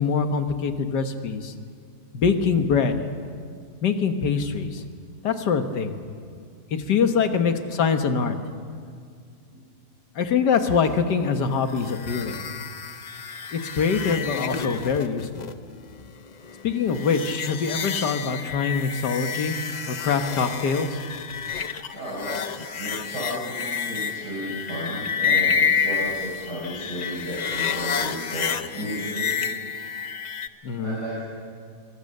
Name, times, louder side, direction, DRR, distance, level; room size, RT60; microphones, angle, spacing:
voice 1, 0.0-1.5 2.1-3.0 3.8-4.8 5.2-6.0 6.7-8.4 10.2-12.4 13.5-15.3 16.6-19.6 19.9-20.9 30.6-31.0, left 5 dB, 90° left, 7 dB, 1.9 m, -24 dB
sound 1, 11.7-30.5, left 6 dB, 55° left, 0.4 m, -29 dB
voice 2, 21.9-29.3 30.8-31.2, equal, 85° right, -7 dB, 6.3 m, -33 dB
24.0 x 23.0 x 6.7 m, 2.2 s
omnidirectional pair, 1.8 m